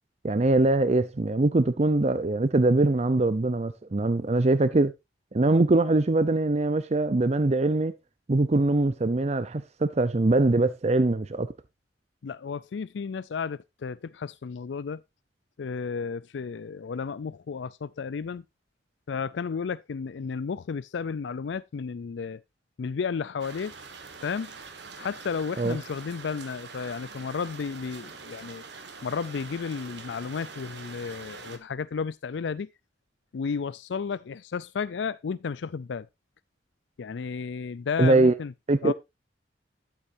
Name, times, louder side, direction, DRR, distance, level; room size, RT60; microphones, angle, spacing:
voice 1, 0.2-4.9 5.3-7.9 8.3-11.5 25.6-25.8 38.0-38.3 38.7-38.9, right 2 dB, 40° right, 0.6 m, -22 dB
voice 2, 12.2-15.0 15.6-18.4 19.1-22.4 22.8-23.7 24.2-24.5 25.0-28.6 29.0-32.7 33.3-36.1 37.0-38.5 38.8-38.9, left 5 dB, 80° left, 0.4 m, -33 dB
sound 1, 23.4-31.6, right 4 dB, 70° right, 1.6 m, -44 dB
11.5 x 8.6 x 2.6 m
head